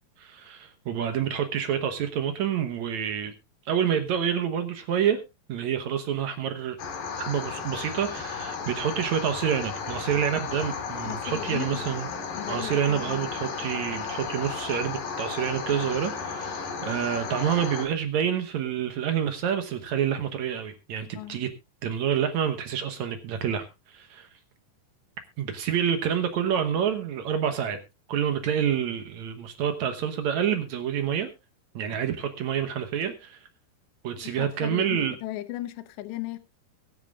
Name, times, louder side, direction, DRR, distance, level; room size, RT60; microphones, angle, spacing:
voice 1, 0.2-3.3 3.6-5.2 5.5-6.8 7.2-12.1 12.5-21.5 21.8-24.3 25.4-27.8 28.1-31.3 31.7-33.5 34.0-35.1, right 8 dB, 80° right, 1.6 m, -28 dB
sound 1, 6.8-17.9, left 5 dB, 55° left, 3.6 m, -34 dB
voice 2, 11.0-11.8 12.3-13.3 21.1-21.4 34.2-36.4, left 15 dB, 80° left, 3.2 m, -36 dB
23.0 x 9.0 x 2.4 m
omnidirectional pair, 5.0 m